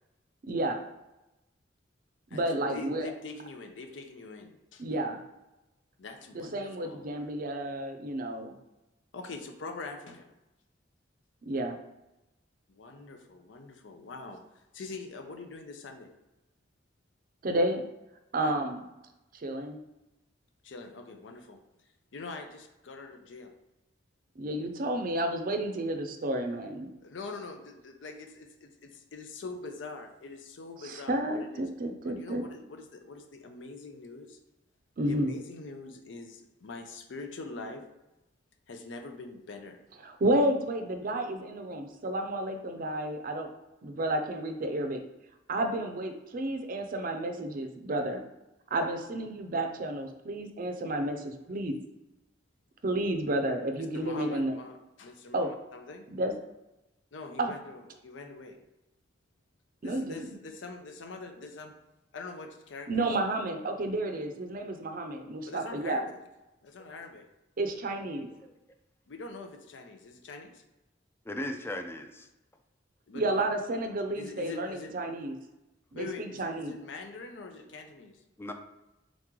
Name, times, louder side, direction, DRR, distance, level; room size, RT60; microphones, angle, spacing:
voice 1, 0.5-0.8 2.3-3.1 4.8-5.2 6.3-8.5 11.5-11.8 17.4-17.8 18.3-18.9 19.3-19.8 24.4-26.9 30.8-32.4 35.0-35.3 40.0-43.5 43.8-45.0 45.5-48.2 48.7-51.7 52.8-54.5 55.3-55.5 56.1-56.3 57.4-57.5 59.8-60.3 62.9-66.0 67.6-68.3 73.1-75.3 75.9-76.8, right 1 dB, 50° right, 6 dB, 0.5 m, -31 dB
voice 2, 2.3-4.8 6.0-7.0 9.1-10.3 12.7-14.4 14.7-16.1 18.4-18.6 20.6-21.6 22.1-23.5 27.0-31.7 32.0-34.4 35.1-37.9 38.7-39.8 53.9-56.1 57.1-58.6 59.8-61.8 62.1-63.1 65.5-66.2 66.6-67.3 69.1-70.6 73.1-73.4 74.1-75.0 76.0-78.2, left 3 dB, 80° left, 5 dB, 0.6 m, -44 dB
voice 3, 71.3-72.3 78.4-78.5, left 1 dB, 15° left, 5 dB, 0.4 m, -37 dB
3.8 x 3.0 x 3.7 m, 0.97 s
head